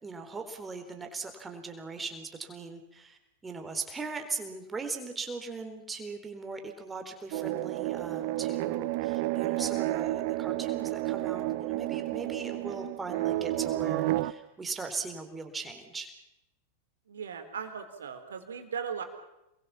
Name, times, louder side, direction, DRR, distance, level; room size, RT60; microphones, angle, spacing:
voice 1, 0.0-16.1, right 4 dB, 15° right, 5 dB, 4.0 m, -39 dB
sound 1, 7.3-14.3, right 17 dB, 45° right, 0.9 m, -31 dB
voice 2, 17.1-19.0, right 7 dB, 65° right, 6 dB, 4.0 m, -38 dB
28.5 x 22.0 x 7.4 m, 0.90 s
figure-of-eight pair, 90°, 0 cm